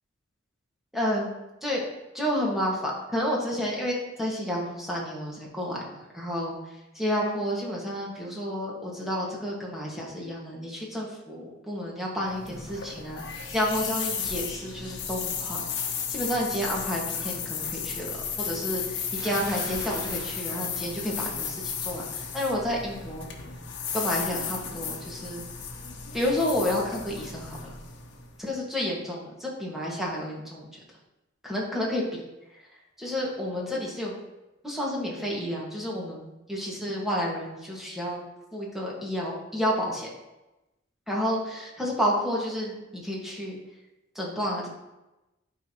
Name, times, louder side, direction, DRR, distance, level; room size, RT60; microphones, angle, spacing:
voice 1, 0.9-1.3 1.6-1.8 2.1-5.8 6.1-6.6 7.0-13.2 13.5-15.6 16.1-18.1 18.4-23.3 23.9-25.4 26.1-27.7 28.4-30.7 31.5-32.2 33.0-34.2 34.6-38.2 38.5-40.1 41.1-43.6 44.2-44.7, equal, ahead, -4 dB, 1.8 m, -30 dB
sound 1, 12.2-28.4, left 6 dB, 65° left, 1.1 m, -34 dB
Bathtub (filling or washing) / Splash splatter, 19.1-21.6, right 1 dB, 65° right, 1.9 m, -41 dB
11.5 x 4.8 x 3.0 m, 0.99 s
head